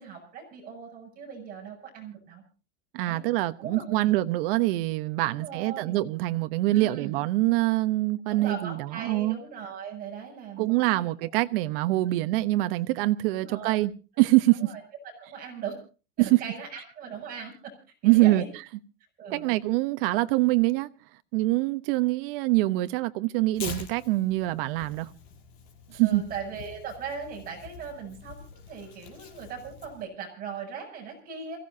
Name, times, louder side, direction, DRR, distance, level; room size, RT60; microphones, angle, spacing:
voice 1, 0.0-2.4 3.0-3.2 3.6-4.2 5.2-6.0 6.7-7.1 8.3-11.3 13.3-13.8 14.1-14.2 14.5-14.8 15.2-15.8 16.2-17.7 18.0-18.5 19.2-19.6 21.6-21.7 26.0-31.6, right 6 dB, 25° right, 7.7 m, -39 dB
voice 2, 2.9-9.4 10.6-13.9 14.2-14.7 16.2-16.4 18.0-18.4 19.3-20.9 21.3-25.1 25.9-26.2, right 18 dB, 55° right, 1.1 m, -24 dB
Tearing, 23.5-30.0, left 6 dB, 50° left, 5.5 m, -45 dB
28.0 x 16.5 x 2.8 m
supercardioid pair, 165°, 34 cm